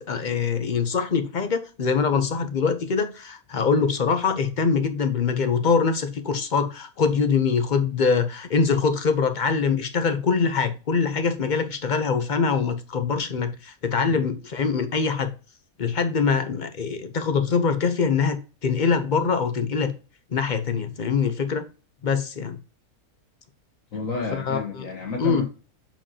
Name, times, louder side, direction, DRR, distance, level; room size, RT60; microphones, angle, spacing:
voice 1, 0.0-15.3 15.8-19.9 20.3-21.6 22.0-22.6 24.5-24.6 25.2-25.5, left 5 dB, 45° left, 0.6 m, -23 dB
voice 2, 23.9-25.5, left 4 dB, 60° left, 1.4 m, -31 dB
7.0 x 5.1 x 2.8 m
omnidirectional pair, 1.6 m